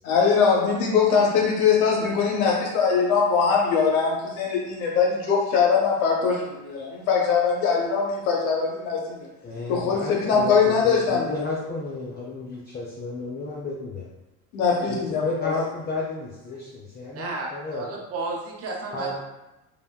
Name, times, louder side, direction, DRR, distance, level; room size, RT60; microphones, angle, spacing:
voice 1, 0.0-9.3 9.7-11.5 14.5-15.5, left 5 dB, 80° left, -1 dB, 0.7 m, -22 dB
voice 2, 9.4-14.0 14.9-17.9 18.9-19.2, left 3 dB, 25° left, -3 dB, 0.4 m, -32 dB
voice 3, 17.1-19.2, right 3 dB, 35° right, -1 dB, 0.8 m, -32 dB
3.3 x 2.2 x 2.2 m, 0.99 s
hypercardioid pair, 80°, 43 cm